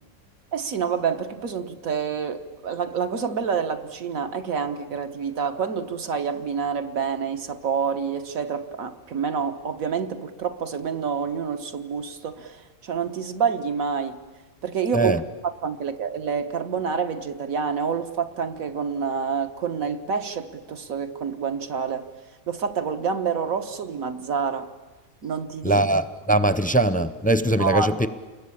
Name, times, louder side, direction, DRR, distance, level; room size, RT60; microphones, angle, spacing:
voice 1, 0.5-14.2 14.6-15.2 15.6-22.1 22.5-24.7 25.2-25.8 27.6-27.9, right 6 dB, 85° right, 8 dB, 1.7 m, -28 dB
voice 2, 25.6-28.1, right 2 dB, 10° left, 13 dB, 0.4 m, -21 dB
29.0 x 22.0 x 8.7 m, 1.3 s
omnidirectional pair, 1.4 m